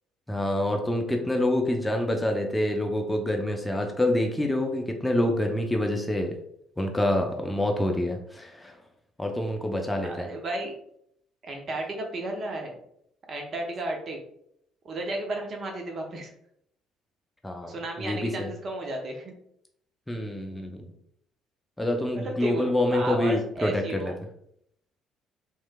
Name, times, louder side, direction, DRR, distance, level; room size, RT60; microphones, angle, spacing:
voice 1, 0.3-6.4 6.8-8.7 9.2-10.3 17.4-18.5 20.1-20.7 21.8-24.1, left 1 dB, 10° left, 3 dB, 0.6 m, -27 dB
voice 2, 10.0-10.7 11.4-12.7 13.3-14.2 14.8-16.3 17.7-19.3 22.1-24.2, right 1 dB, 45° right, 2 dB, 0.7 m, -33 dB
3.1 x 3.1 x 2.2 m, 0.72 s
figure-of-eight pair, 50°, 0 cm